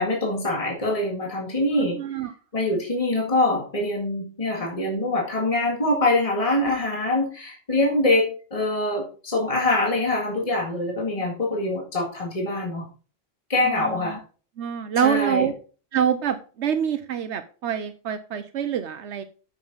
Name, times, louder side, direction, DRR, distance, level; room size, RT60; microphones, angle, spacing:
voice 1, 0.0-2.0 2.5-12.9 13.5-14.2 15.0-15.5, left 2 dB, 30° left, 0 dB, 2.0 m, -24 dB
voice 2, 1.7-2.3 13.7-14.2 14.6-15.5 15.9-19.2, right 9 dB, 85° right, 9 dB, 1.1 m, -26 dB
8.7 x 6.5 x 4.0 m, 0.37 s
omnidirectional pair, 1.1 m